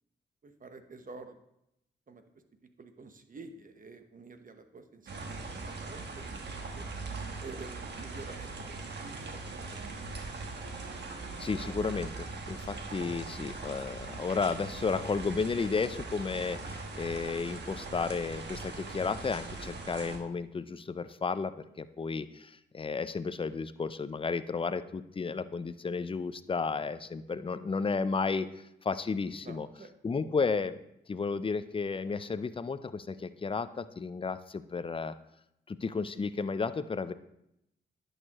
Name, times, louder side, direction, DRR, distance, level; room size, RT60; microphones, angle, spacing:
voice 1, 0.4-1.4 2.1-2.2 2.8-6.2 6.7-6.9 7.4-9.0 9.3-9.9 26.7-26.8 29.4-29.9, right 3 dB, 45° right, 7 dB, 1.0 m, -49 dB
sound 1, 5.1-20.2, right 3 dB, 65° right, 1.3 m, -41 dB
voice 2, 11.4-29.7 30.0-30.8 31.1-35.1 35.7-37.1, left 4 dB, 30° left, 13 dB, 0.5 m, -33 dB
10.5 x 6.6 x 3.0 m, 0.82 s
cardioid pair, 55°, 19 cm